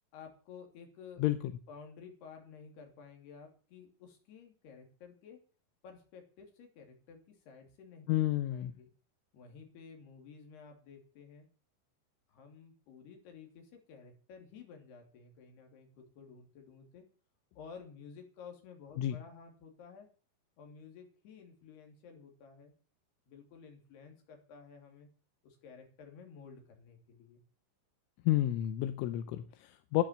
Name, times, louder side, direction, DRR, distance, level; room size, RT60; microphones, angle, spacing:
voice 1, 0.1-1.2 1.7-5.4 5.8-8.1 8.5-8.9 9.3-11.5 12.3-17.0 17.6-20.1 20.6-22.7 23.3-25.1 25.4-27.4, left 6 dB, 60° left, 4.8 m, -53 dB
voice 2, 1.2-1.5 8.1-8.7 19.0-19.2 28.3-30.0, left 14 dB, 85° left, 3.3 m, -30 dB
12.0 x 9.4 x 7.5 m
omnidirectional pair, 5.5 m